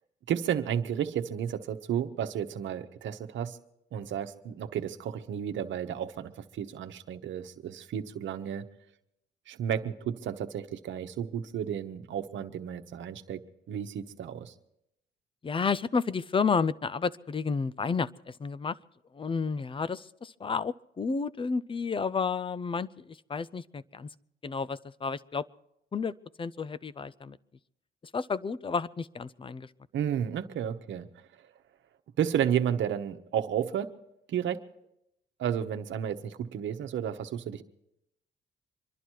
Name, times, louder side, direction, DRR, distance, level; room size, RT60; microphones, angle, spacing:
voice 1, 0.3-3.6 3.9-8.6 9.5-13.4 13.7-14.5 29.9-31.3 32.2-33.9 34.3-34.6 35.4-37.6, right 9 dB, 70° right, 7 dB, 1.1 m, -32 dB
voice 2, 15.4-18.8 19.1-24.1 24.4-25.5 25.9-27.4 28.1-29.7, left 5 dB, 25° left, 19 dB, 0.5 m, -31 dB
25.5 x 11.5 x 4.6 m, 0.81 s
cardioid pair, 90°, 20 cm